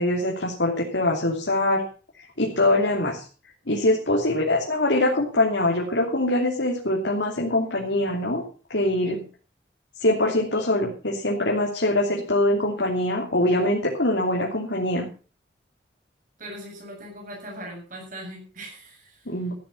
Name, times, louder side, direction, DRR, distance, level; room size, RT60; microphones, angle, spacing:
voice 1, 0.0-1.9 2.4-3.2 3.7-8.4 8.7-9.2 10.0-15.1 19.3-19.5, left 1 dB, 85° left, -2 dB, 3.1 m, -23 dB
voice 2, 16.4-19.3, right 1 dB, 50° right, 0 dB, 7.4 m, -40 dB
15.0 x 10.5 x 5.6 m, 0.37 s
head